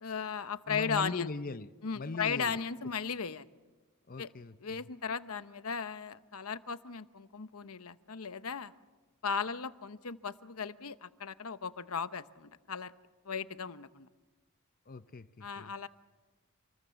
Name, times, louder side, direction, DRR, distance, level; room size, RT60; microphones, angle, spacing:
voice 1, 0.0-1.3 1.8-3.5 4.2-4.3 4.6-8.7 9.2-12.9 13.2-14.1 15.4-15.9, left 6 dB, 80° left, 0.9 m, -36 dB
voice 2, 0.7-2.6 4.1-4.9 14.9-15.7, left 3 dB, 40° left, 0.7 m, -41 dB
27.5 x 20.5 x 7.0 m
head